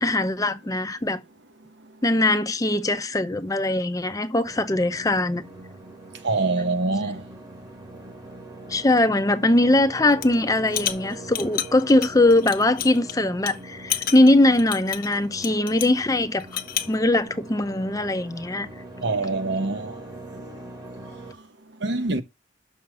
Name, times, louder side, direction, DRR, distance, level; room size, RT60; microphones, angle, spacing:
voice 1, 0.0-1.2 2.0-5.4 8.7-16.5 16.9-18.7, left 1 dB, 20° left, 0.6 m, -21 dB
sound 1, 4.4-21.3, right 1 dB, 20° right, 1.6 m, -42 dB
voice 2, 6.2-7.2 19.0-19.9 21.8-22.2, right 3 dB, 65° right, 1.1 m, -24 dB
sound 2, 10.1-10.3 10.7-13.1 13.5-13.6 13.9-16.0 16.4-16.9, left 11 dB, 50° left, 0.8 m, -30 dB
6.4 x 5.6 x 6.6 m
head